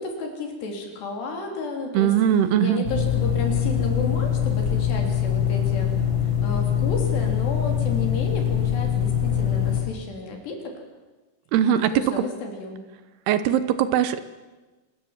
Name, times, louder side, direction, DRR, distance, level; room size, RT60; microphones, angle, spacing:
voice 1, 0.0-2.1 2.6-5.9 6.2-10.8 11.9-12.8, left 3 dB, 65° left, 3 dB, 5.5 m, -32 dB
voice 2, 1.9-2.9 11.5-12.2 13.3-14.2, right 10 dB, 75° right, 13 dB, 2.6 m, -20 dB
sound 1, 2.8-9.8, left 9 dB, 25° left, 5.1 m, -23 dB
26.5 x 20.5 x 7.4 m, 1.2 s
omnidirectional pair, 5.3 m